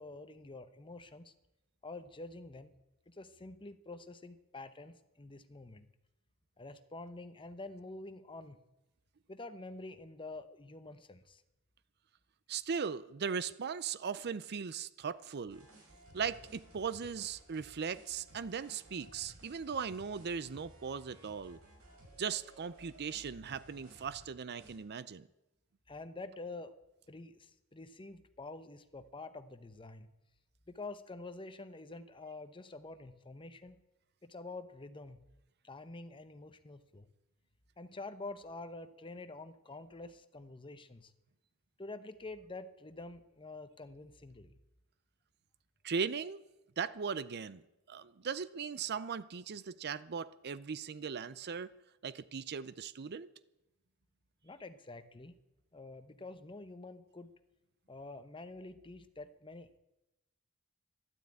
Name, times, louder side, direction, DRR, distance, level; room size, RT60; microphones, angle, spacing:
voice 1, 0.0-1.3 1.8-2.7 3.1-5.9 6.6-8.6 9.3-11.4 25.9-26.7 27.1-30.1 30.7-33.8 34.2-35.2 35.6-37.1 37.8-41.1 41.8-44.5 54.4-55.3 55.7-57.3 57.9-59.8, left 2 dB, 25° left, 0.9 m, -47 dB
voice 2, 12.5-15.7 16.1-21.6 22.2-25.3 45.8-46.4 46.8-47.6 47.9-51.7 52.0-53.3, right 6 dB, 50° right, 0.5 m, -38 dB
sound 1, 15.5-24.3 24.6-24.7, right 1 dB, 85° right, 6.3 m, -58 dB
13.0 x 12.0 x 8.6 m
head